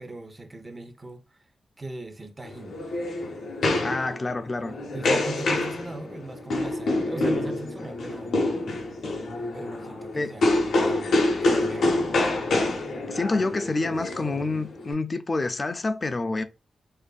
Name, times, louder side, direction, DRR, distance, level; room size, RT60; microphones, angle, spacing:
voice 1, 0.0-1.4 1.8-2.8 4.9-8.4 9.5-12.3, right 2 dB, 30° right, 0.6 m, -39 dB
sound 1, 2.4-14.9, left 2 dB, 80° left, 0.6 m, -26 dB
voice 2, 3.8-4.7 10.1-10.3 13.1-16.4, left 3 dB, 40° left, 0.3 m, -27 dB
2.5 x 2.4 x 2.3 m
cardioid pair, 65°, 0 cm